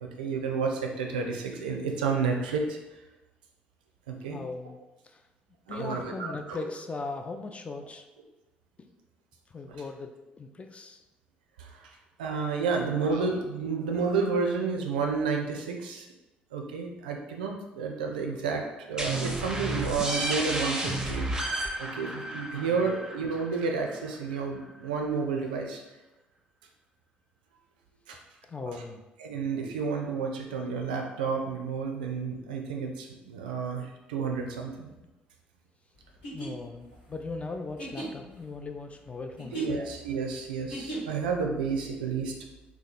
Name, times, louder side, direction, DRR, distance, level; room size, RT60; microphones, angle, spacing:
voice 1, 0.0-2.8 4.1-4.4 5.7-6.6 11.6-16.1 16.5-25.8 28.1-28.2 29.2-34.9 39.5-42.3, right 5 dB, 75° right, 2 dB, 0.4 m, -31 dB
voice 2, 4.2-4.8 5.0-5.2 5.7-8.1 8.8-8.9 9.5-11.0 22.7-22.9 28.5-29.0 36.3-39.8, left 3 dB, 25° left, 5 dB, 0.4 m, -39 dB
sound 1, 19.0-24.4, right 1 dB, 15° right, 0.6 m, -32 dB
sound 2, 36.1-41.3, right 1 dB, 80° left, 1.2 m, -39 dB
2.9 x 2.2 x 4.1 m, 1.1 s
figure-of-eight pair, 50°, 5 cm